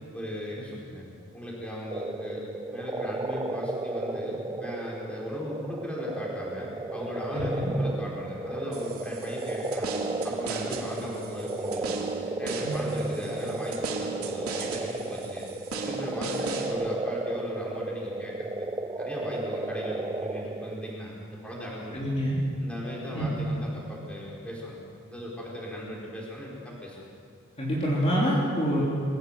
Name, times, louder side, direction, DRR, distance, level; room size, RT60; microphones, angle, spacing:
voice 1, 0.1-1.1 1.3-2.4 2.7-9.9 10.2-12.0 12.4-18.7 19.0-22.0 22.6-24.8 25.1-27.1, left 1 dB, 5° left, -4 dB, 4.9 m, -37 dB
sound 1, 1.9-21.0, right 2 dB, 15° right, 0.5 m, -34 dB
voice 2, 7.3-7.7 12.6-12.9 21.9-22.4 23.1-23.5 27.6-28.8, equal, 30° left, -6 dB, 3.5 m, -27 dB
sound 2, 8.7-16.7, right 4 dB, 80° right, 2.7 m, -38 dB
22.5 x 17.5 x 7.6 m, 2.6 s
head